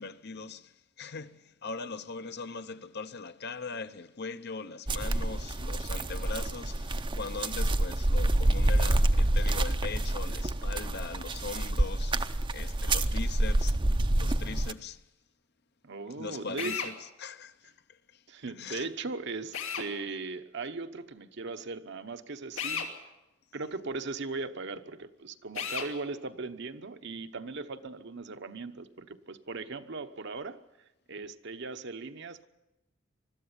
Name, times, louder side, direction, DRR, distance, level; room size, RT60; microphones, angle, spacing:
voice 1, 0.0-15.0 16.2-18.2 18.6-18.9, left 4 dB, 55° left, 0.8 m, -41 dB
sound 1, 4.9-14.7, right 1 dB, 25° right, 0.6 m, -27 dB
voice 2, 15.8-16.8 18.3-22.9 23.5-30.6 31.1-32.5, right 3 dB, 60° right, 1.0 m, -38 dB
Drill, 16.6-16.9 19.5-19.9 22.6-22.9 25.5-25.9, left 6 dB, 90° left, 2.8 m, -33 dB
21.5 x 13.5 x 9.8 m
head